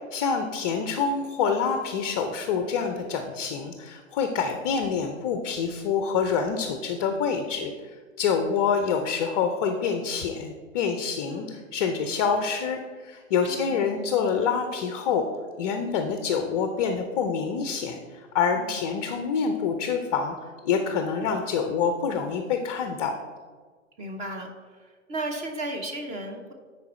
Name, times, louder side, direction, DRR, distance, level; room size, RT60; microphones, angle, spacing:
voice 1, 0.1-15.2 15.6-23.2, left 6 dB, 25° left, 6 dB, 0.5 m, -27 dB
voice 2, 11.2-11.5 13.5-13.8 18.5-18.8 24.0-26.5, right 1 dB, 20° right, 3 dB, 0.6 m, -35 dB
9.5 x 4.4 x 4.1 m, 1.5 s
figure-of-eight pair, 105°, 39 cm